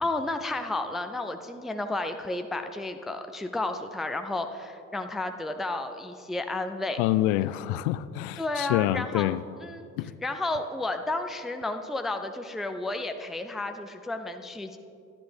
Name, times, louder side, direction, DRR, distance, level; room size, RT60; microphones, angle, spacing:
voice 1, 0.0-7.0 8.4-9.3 9.6-9.9 10.2-14.8, left 2 dB, ahead, 7 dB, 0.4 m, -32 dB
voice 2, 7.0-9.4 10.0-10.1, left 15 dB, 60° left, 16 dB, 0.5 m, -26 dB
12.0 x 10.0 x 3.4 m, 2.5 s
hypercardioid pair, 60°, 41 cm